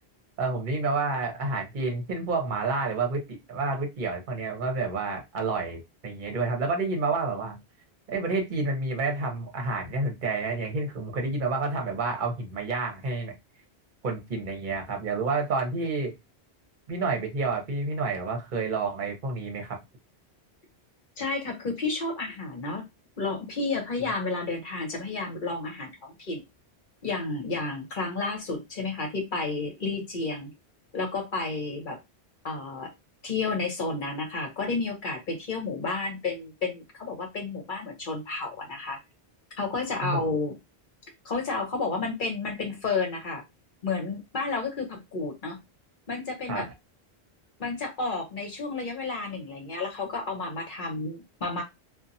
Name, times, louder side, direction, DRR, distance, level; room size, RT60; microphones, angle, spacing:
voice 1, 0.4-7.6 8.1-13.3 14.0-16.1 16.9-19.8 40.0-40.3 46.5-46.7, right 3 dB, 50° right, 0.9 m, -29 dB
voice 2, 21.2-22.9 23.2-26.4 27.0-30.5 30.9-32.0 32.4-32.9 33.2-39.0 39.6-40.5 41.2-43.4 43.8-45.6 46.1-46.7 47.6-51.6, left 3 dB, 50° left, 0.9 m, -31 dB
2.6 x 2.3 x 2.6 m
omnidirectional pair, 1.1 m